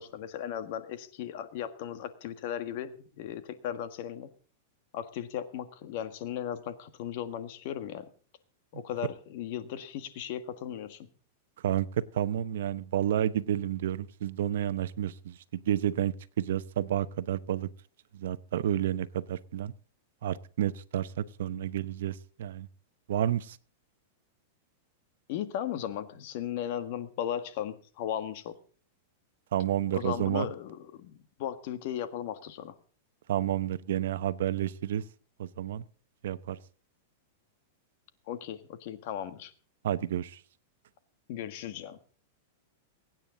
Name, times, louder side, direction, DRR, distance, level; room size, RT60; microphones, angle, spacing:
voice 1, 0.0-4.3 4.9-8.1 8.7-11.1 25.3-28.5 29.9-32.8 38.3-39.5 41.3-42.0, left 10 dB, 50° left, 11 dB, 1.6 m, -36 dB
voice 2, 11.6-17.7 18.1-19.7 20.2-22.7 23.1-23.6 29.5-30.5 33.3-35.0 35.4-35.8 36.2-36.6 39.8-40.4, right 11 dB, 75° right, 15 dB, 0.9 m, -30 dB
23.5 x 9.1 x 3.9 m, 0.41 s
supercardioid pair, 155°, 0 cm